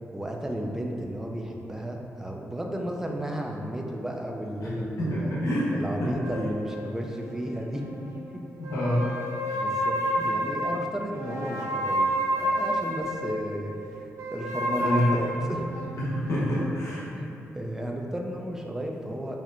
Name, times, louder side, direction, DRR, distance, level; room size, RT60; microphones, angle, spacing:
voice 1, 0.1-5.3 5.7-7.8 8.3-8.4 9.5-12.1 12.4-15.6 17.1-17.3 17.5-19.4, right 1 dB, 10° right, 0 dB, 0.3 m, -33 dB
voice 2, 4.6-6.1 8.6-9.1 9.5-9.6 10.2-10.3 14.8-15.4 16.0-17.0, equal, 75° left, -8 dB, 0.9 m, -27 dB
sound 1, 6.2-8.2 8.6-13.5 14.2-16.8, equal, 80° right, 0.4 m, -30 dB
4.3 x 2.1 x 2.5 m, 2.7 s
cardioid pair, 100°, 5 cm